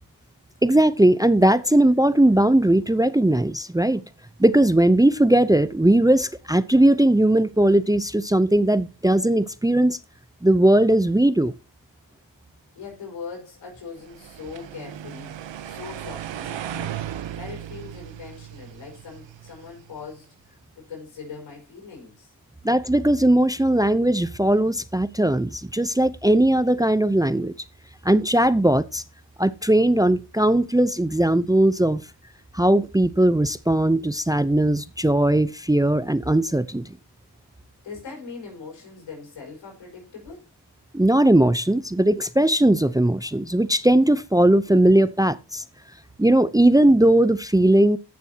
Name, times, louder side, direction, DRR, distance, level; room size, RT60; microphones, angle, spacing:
voice 1, 0.6-4.0 4.4-10.0 10.4-11.5 22.6-27.5 28.0-29.0 29.4-32.0 32.5-36.9 40.9-45.6 46.2-48.0, right 1 dB, 10° right, 0.6 m, -19 dB
voice 2, 12.8-17.1 17.4-20.3 20.8-22.3 37.8-40.5, left 5 dB, 80° left, 5.4 m, -40 dB
sound 1, 14.0-20.1, right 10 dB, 85° right, 0.9 m, -36 dB
15.0 x 6.9 x 2.9 m
supercardioid pair, 45°, 43 cm